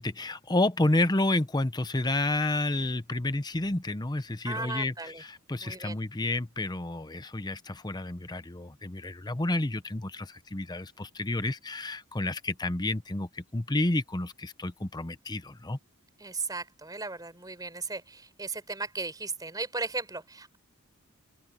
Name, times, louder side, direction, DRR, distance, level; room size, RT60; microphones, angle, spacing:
voice 1, 0.0-15.8, left 2 dB, 20° left, 0.8 m, -30 dB
voice 2, 4.4-5.2 5.6-6.0 16.2-20.6, right 3 dB, 15° right, 4.5 m, -36 dB
open air
head